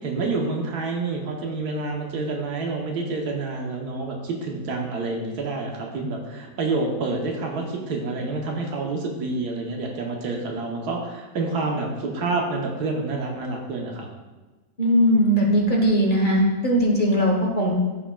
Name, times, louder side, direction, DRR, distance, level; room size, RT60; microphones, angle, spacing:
voice 1, 0.0-14.1, right 3 dB, 80° right, 1 dB, 1.5 m, -28 dB
voice 2, 14.8-17.7, equal, 35° left, -1 dB, 1.2 m, -19 dB
14.5 x 4.8 x 2.3 m, 1.2 s
omnidirectional pair, 1.7 m